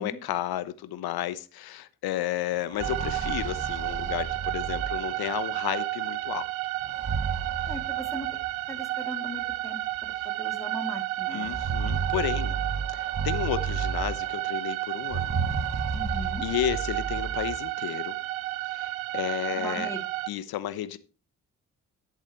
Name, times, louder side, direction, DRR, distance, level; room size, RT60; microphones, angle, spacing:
voice 1, 0.0-6.5 11.3-12.6 12.9-15.4 16.4-18.2 18.7-19.9 20.3-21.0, left 12 dB, 65° left, 1.0 m, -32 dB
sound 1, 2.6-5.5 6.8-8.5 9.5-9.6 10.0-10.1 11.3-14.5 15.0-17.6, right 5 dB, 40° right, 1.9 m, -33 dB
sound 2, 2.8-20.3, right 17 dB, 85° right, 0.6 m, -32 dB
voice 2, 7.6-8.4 8.7-9.8 10.2-11.5 15.9-16.4 19.5-20.0, left 1 dB, 5° left, 2.9 m, -39 dB
11.0 x 8.2 x 4.5 m
hypercardioid pair, 45°, 40 cm